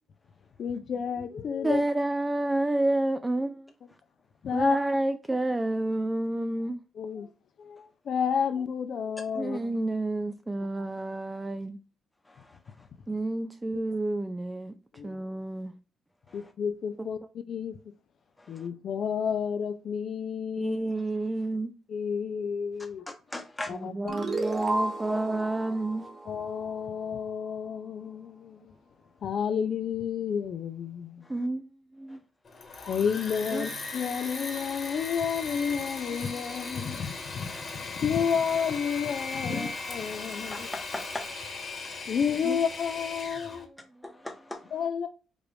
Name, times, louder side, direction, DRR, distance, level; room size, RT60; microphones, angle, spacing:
voice 1, 0.6-1.8 4.4-4.8 7.0-7.3 7.6-9.6 14.9-15.2 16.3-17.8 18.5-20.8 21.9-23.0 23.7-24.1 26.3-28.7 29.2-31.2 32.9-40.7 42.1-43.7 44.7-45.1, left 7 dB, 60° left, 0.5 m, -31 dB
voice 2, 1.6-3.7 4.5-6.8 9.3-11.8 13.1-14.7 15.0-15.7 17.0-17.1 20.5-21.7 23.7-26.1 31.3-31.6 31.9-32.2 33.5-33.7 39.5-39.7 42.4-42.6, right 2 dB, 15° right, 0.4 m, -29 dB
voice 3, 12.3-12.6 16.3-16.5 18.4-18.7 23.3-23.8 25.1-25.2 31.2-31.3 32.1-32.2 32.6-32.9 40.5-42.1 44.0-44.7, left 1 dB, 10° left, 1.0 m, -40 dB
sound 1, 24.1-27.3, right 2 dB, 35° right, 0.9 m, -33 dB
Engine / Mechanisms, 32.4-43.6, left 3 dB, 40° left, 1.5 m, -38 dB
4.8 x 2.5 x 3.3 m
cardioid pair, 90°, 0 cm